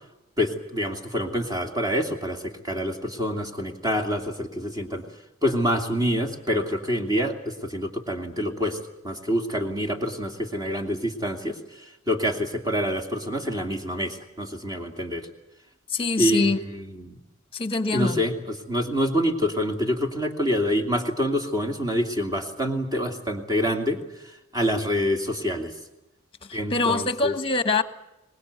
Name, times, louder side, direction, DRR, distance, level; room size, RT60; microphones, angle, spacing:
voice 1, 0.4-5.0 5.4-8.8 9.0-11.5 12.1-15.3 16.2-17.2 17.9-24.0 24.5-25.7 26.5-27.3, equal, 20° right, 4 dB, 2.6 m, -26 dB
voice 2, 15.9-16.6 17.5-18.2 26.5-27.8, left 3 dB, 25° left, 11 dB, 1.4 m, -24 dB
24.0 x 20.0 x 8.2 m, 0.91 s
head